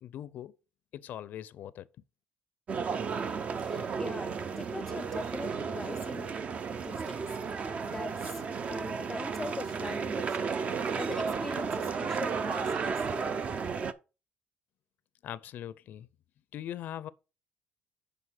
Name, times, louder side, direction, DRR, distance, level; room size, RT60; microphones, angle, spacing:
voice 1, 0.0-0.5 0.9-1.9 15.2-16.1 16.5-17.1, left 11 dB, 65° left, 0.4 m, -41 dB
sound 1, 2.7-13.9, right 5 dB, 40° right, 0.6 m, -33 dB
voice 2, 3.4-13.7, left 2 dB, 10° left, 0.5 m, -43 dB
6.4 x 5.1 x 5.7 m
cardioid pair, 130°, 3 cm